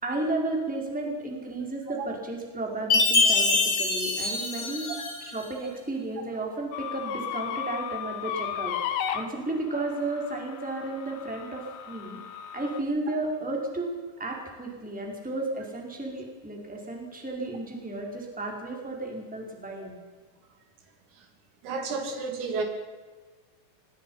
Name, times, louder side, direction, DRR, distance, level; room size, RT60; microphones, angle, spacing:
voice 1, 0.0-4.9 5.2-8.8 9.1-12.2 12.5-13.9 14.2-20.0, right 2 dB, ahead, 0 dB, 3.9 m, -33 dB
Chime, 2.9-5.4, left 3 dB, 35° left, 4.2 m, -24 dB
sound 1, 6.7-12.8, left 9 dB, 85° left, 4.1 m, -35 dB
voice 2, 21.6-22.6, right 4 dB, 80° right, 4 dB, 5.5 m, -31 dB
26.0 x 20.5 x 5.7 m, 1.4 s
omnidirectional pair, 6.0 m